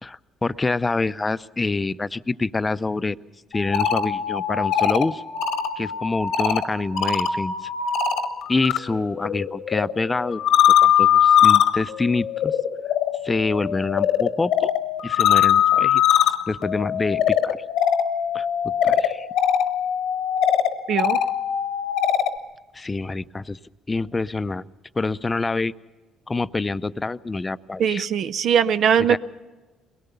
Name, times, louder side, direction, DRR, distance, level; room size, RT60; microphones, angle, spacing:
voice 1, 0.0-3.2 3.5-5.2 5.8-7.7 8.5-10.4 10.8-12.6 13.2-14.7 15.0-16.0 16.5-17.6 18.3-19.3 22.7-23.6 23.9-24.7 24.9-25.7 26.3-28.1 29.1-29.2, left 3 dB, 25° left, 15 dB, 0.6 m, -26 dB
sound 1, 3.5-8.8 9.1-22.4, left 9 dB, 75° left, 1.2 m, -21 dB
voice 2, 20.9-21.2 27.8-29.2, right 8 dB, 65° right, 12 dB, 0.6 m, -20 dB
22.0 x 18.5 x 6.9 m, 1.2 s
supercardioid pair, 70°, 0 cm